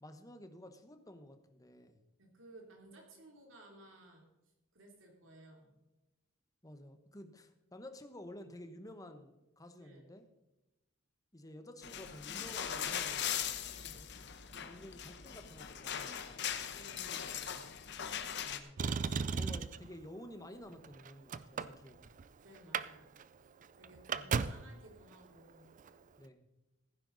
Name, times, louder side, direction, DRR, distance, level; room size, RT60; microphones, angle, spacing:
voice 1, 0.0-2.0 6.6-10.3 11.3-13.4 14.6-16.6 18.5-22.1 24.1-24.5 26.2-26.5, left 1 dB, 15° left, 8 dB, 1.1 m, -52 dB
voice 2, 2.2-4.3 4.7-5.8 9.7-10.1 13.7-14.1 16.7-17.6 22.4-23.1 23.8-25.7, right 1 dB, 70° right, 1 dB, 3.2 m, -57 dB
sound 1, 11.8-18.6, left 9 dB, 60° left, 1.0 m, -40 dB
Motor vehicle (road), 18.8-19.9 20.7-22.2 22.6-22.9 23.2-23.3 23.6-24.7 25.8-25.9, right 5 dB, 40° right, 0.4 m, -35 dB
15.5 x 10.0 x 4.0 m, 0.98 s
head